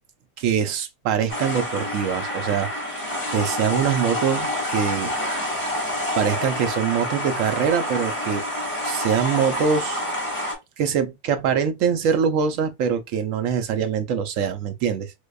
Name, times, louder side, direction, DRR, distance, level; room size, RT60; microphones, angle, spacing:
voice 1, 0.4-2.7 3.3-5.1 6.2-8.4 8.8-10.0 10.8-15.1, right 7 dB, 65° right, 0.8 m, -23 dB
sound 1, 1.3-10.6, left 1 dB, 5° left, 1.2 m, -28 dB
4.6 x 2.3 x 2.2 m
omnidirectional pair, 1.8 m